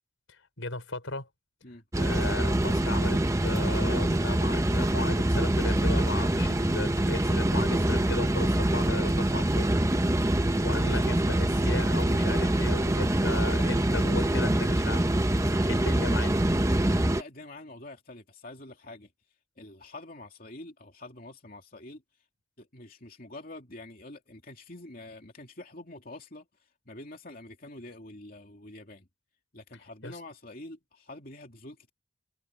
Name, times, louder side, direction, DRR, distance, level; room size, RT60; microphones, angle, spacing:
voice 1, 0.3-1.3 2.0-9.7 10.3-15.0 15.6-16.3 30.0-30.2, left 2 dB, 80° left, 5.7 m, -36 dB
sound 1, 1.9-17.2, right 1 dB, 15° right, 0.8 m, -25 dB
voice 2, 17.2-22.3 22.6-29.1 29.5-31.9, left 2 dB, 45° left, 2.8 m, -46 dB
head